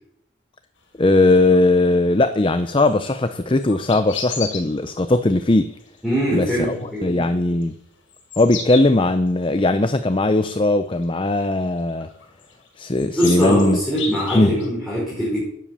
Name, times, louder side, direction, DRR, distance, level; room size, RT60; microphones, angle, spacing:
voice 1, 1.0-5.7 6.3-7.7 8.4-12.1 12.8-13.8 14.3-14.5, left 2 dB, 25° left, 10 dB, 0.6 m, -19 dB
sound 1, 1.3-1.8 2.6-5.4 5.7-6.1 6.4-7.7 8.1-9.9 10.2-10.3 10.7-11.4 11.8-14.7, left 6 dB, 75° left, 5.2 m, -34 dB
voice 2, 6.0-7.1 13.1-15.4, equal, ahead, -7 dB, 5.9 m, -22 dB
13.0 x 10.0 x 6.8 m, 0.73 s
head